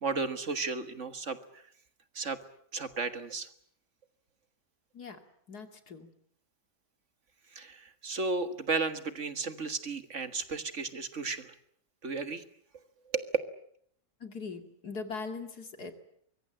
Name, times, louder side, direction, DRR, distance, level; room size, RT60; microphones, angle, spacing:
voice 1, 0.0-1.6 2.2-2.4 2.7-3.5 7.6-11.5 12.0-12.4 13.1-13.4, right 4 dB, 45° right, 11 dB, 1.8 m, -34 dB
voice 2, 5.5-6.1 14.2-15.9, left 4 dB, 65° left, 7 dB, 3.0 m, -40 dB
24.5 x 22.5 x 8.9 m, 0.68 s
omnidirectional pair, 1.8 m